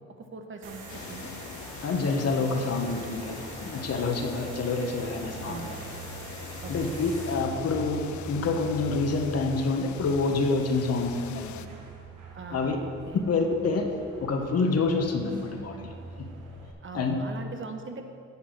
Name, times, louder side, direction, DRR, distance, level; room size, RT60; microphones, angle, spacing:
voice 1, 0.2-1.3 5.4-5.8 6.6-7.0 12.3-13.2 16.8-18.0, right 4 dB, 40° right, 5 dB, 1.2 m, -41 dB
sound 1, 0.6-16.7, right 3 dB, 85° right, 1.6 m, -43 dB
sound 2, 0.9-11.7, left 9 dB, 70° left, 0.6 m, -43 dB
voice 2, 1.8-5.7 6.7-11.7 12.5-12.8 13.3-13.9 14.2-16.3 16.9-17.1, left 3 dB, 55° left, 3 dB, 1.4 m, -27 dB
10.0 x 7.3 x 6.4 m, 2.4 s
cardioid pair, 90°, 30 cm